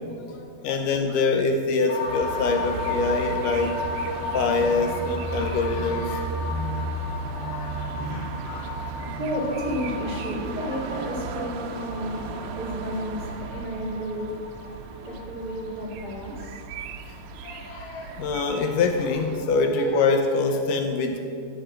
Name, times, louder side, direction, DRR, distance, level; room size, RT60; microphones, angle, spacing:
voice 1, 0.0-3.9 4.2-6.3 7.3-7.8 8.1-8.9 17.1-17.2 17.4-21.2, left 3 dB, 75° left, 5 dB, 2.2 m, -25 dB
sound 1, 1.9-17.9 18.1-18.2, left 3 dB, 55° left, 3.1 m, -35 dB
sound 2, 2.1-19.4, right 3 dB, 85° right, 2.5 m, -35 dB
voice 2, 9.1-12.3 12.5-14.3 15.0-16.5, equal, 35° right, -5 dB, 2.2 m, -32 dB
13.5 x 6.6 x 7.8 m, 2.4 s
omnidirectional pair, 4.1 m